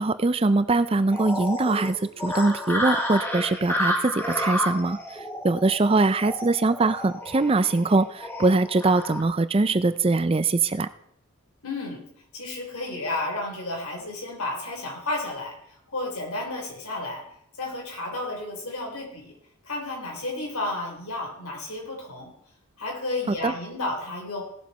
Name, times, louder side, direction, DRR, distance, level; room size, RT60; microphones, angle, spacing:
voice 1, 0.0-2.0 2.2-10.9 23.3-23.5, right 3 dB, 25° right, 13 dB, 0.4 m, -22 dB
sound 1, 1.1-9.2, left 1 dB, 10° left, 1.1 m, -30 dB
voice 2, 11.6-12.1 12.3-17.3 17.6-19.4 19.6-22.3 22.8-24.4, left 2 dB, 90° left, 0 dB, 3.6 m, -32 dB
17.5 x 7.3 x 4.2 m, 0.73 s
head